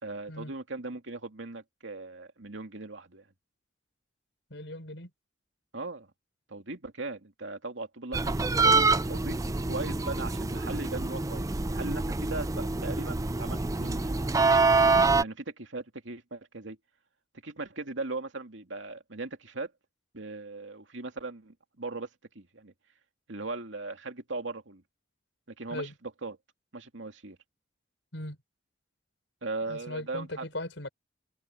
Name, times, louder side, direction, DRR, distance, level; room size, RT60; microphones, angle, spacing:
voice 1, 0.0-3.2 5.7-6.1 6.5-14.5 15.1-16.8 17.4-19.7 20.1-22.1 22.3-22.7 23.3-24.8 25.6-25.9 26.2-26.4 26.7-27.4 29.4-30.5, right 3 dB, 80° right, 2.4 m, -38 dB
voice 2, 4.5-5.1 25.7-25.9 28.1-28.4 29.7-30.9, left 1 dB, 75° left, 5.6 m, -38 dB
sound 1, 8.1-15.2, right 3 dB, 15° right, 0.5 m, -26 dB
head